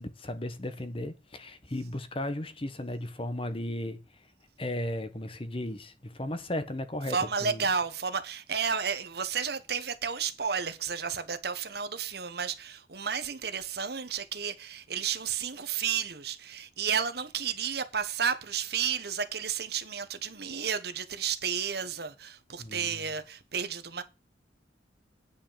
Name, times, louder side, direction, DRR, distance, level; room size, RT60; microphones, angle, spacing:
voice 1, 0.0-4.0 4.6-7.2 7.4-7.6 22.6-23.1, left 1 dB, 30° left, 1.2 m, -35 dB
voice 2, 7.1-24.0, right 6 dB, 60° right, 1.2 m, -32 dB
9.3 x 5.6 x 7.3 m
head